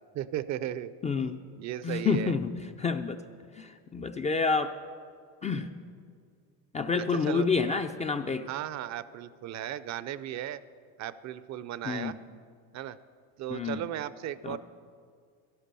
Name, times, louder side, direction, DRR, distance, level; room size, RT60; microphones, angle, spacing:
voice 1, 0.1-0.9 1.2-2.3 7.3-7.5 8.5-10.6 11.0-12.1 12.7-13.0 13.4-14.6, right 12 dB, 45° right, 16 dB, 0.5 m, -36 dB
voice 2, 1.0-1.4 1.8-3.2 3.5-4.8 5.4-5.7 6.7-8.5 11.8-12.2 13.5-13.9 14.4-14.6, left 5 dB, 20° left, 7 dB, 0.3 m, -29 dB
12.5 x 11.5 x 6.8 m, 2.1 s
cardioid pair, 130°, 39 cm